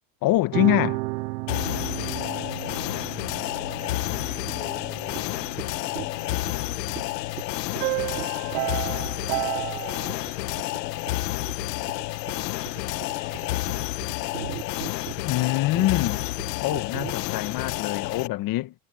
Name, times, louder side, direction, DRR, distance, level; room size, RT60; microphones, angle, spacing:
voice 1, 0.2-1.0 15.2-16.2 16.6-18.7, left 16 dB, 45° left, 1.4 m, -24 dB
sound 1, 0.5-7.2 7.7-10.8, right 28 dB, 60° right, 0.8 m, -33 dB
sound 2, 1.5-18.3, left 17 dB, 80° left, 1.2 m, -30 dB
voice 2, 1.9-3.0 3.7-12.1 12.7-14.4, left 4 dB, 15° left, 5.5 m, -51 dB
sound 3, 4.2-4.3 4.5-4.7 5.2-5.3 5.6-5.7 6.0-6.5 7.0-7.1 7.4-7.5 7.8-7.9 8.2-8.7 9.1-9.3 9.6-9.8 10.1-10.3 10.6-10.8 11.1-17.1, right 15 dB, 90° right, 1.1 m, -38 dB
supercardioid pair, 105°, 48 cm